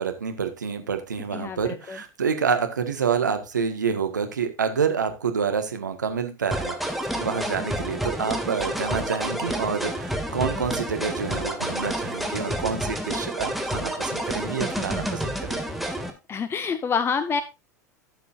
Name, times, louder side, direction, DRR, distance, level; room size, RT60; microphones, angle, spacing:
voice 1, 0.0-6.8 7.2-15.6, right 6 dB, 85° right, 6 dB, 1.6 m, -28 dB
voice 2, 1.3-2.0 16.3-17.4, left 5 dB, 25° left, 13 dB, 0.8 m, -27 dB
sound 1, 6.5-16.1, equal, ahead, 2.3 m, -29 dB
16.5 x 6.9 x 2.6 m, 0.24 s
hypercardioid pair, 85°, 10 cm